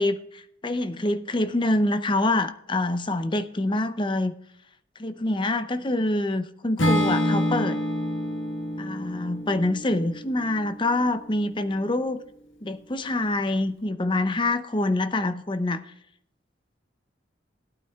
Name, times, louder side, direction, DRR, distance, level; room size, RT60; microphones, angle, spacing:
voice 1, 0.0-4.3 5.0-7.8 8.8-12.2 12.6-15.9, left 2 dB, 25° left, 11 dB, 0.6 m, -26 dB
Acoustic guitar / Strum, 6.8-11.0, left 1 dB, 90° left, 1.6 m, -27 dB
18.0 x 8.9 x 2.4 m, 0.74 s
head